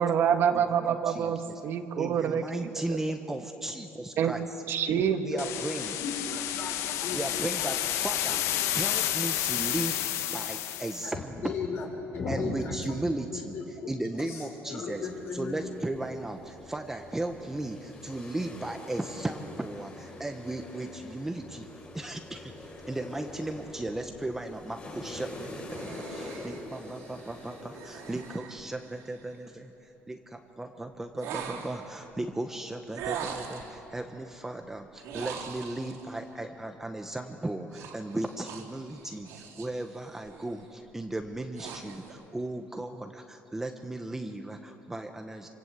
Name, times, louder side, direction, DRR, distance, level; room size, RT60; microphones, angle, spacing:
voice 1, 0.0-3.0 4.2-4.3 4.7-5.2, right 8 dB, 50° right, 7 dB, 1.4 m, -27 dB
voice 2, 0.9-1.6 2.0-4.6 5.2-6.0 7.1-10.0 10.3-11.6 12.3-21.7 21.9-45.5, right 2 dB, 10° right, 5 dB, 0.9 m, -36 dB
sound 1, 5.4-11.0, left 11 dB, 70° left, 1.2 m, -30 dB
voice 3, 5.8-7.7 8.0-8.1 11.0-11.2 11.4-11.9 12.1-12.8 13.3-13.9 14.3-15.6, left 4 dB, 50° left, 2 dB, 5.2 m, -36 dB
sound 2, 14.9-28.4, left 2 dB, 30° left, 6.1 m, -45 dB
sound 3, 25.2-29.4 31.2-31.9 32.9-33.8 35.0-36.0 37.7-39.8 40.2-40.5 41.1-42.1, right 7 dB, 80° right, 3.8 m, -42 dB
27.5 x 26.5 x 8.1 m, 3.0 s
cardioid pair, 165°, 5 cm